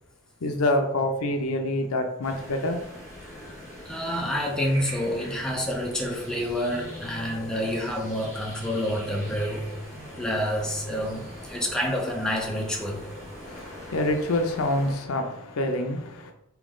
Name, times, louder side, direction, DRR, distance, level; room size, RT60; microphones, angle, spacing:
voice 1, 0.4-2.8 13.4-16.3, left 1 dB, 85° left, 0.6 m, -26 dB
sound 1, 2.2-15.0, equal, 10° right, 1.4 m, -42 dB
voice 2, 3.9-9.7 10.2-13.1, equal, 5° left, 0.4 m, -28 dB
sound 2, 6.4-11.7, right 1 dB, 30° right, 1.0 m, -48 dB
3.7 x 2.9 x 3.6 m
head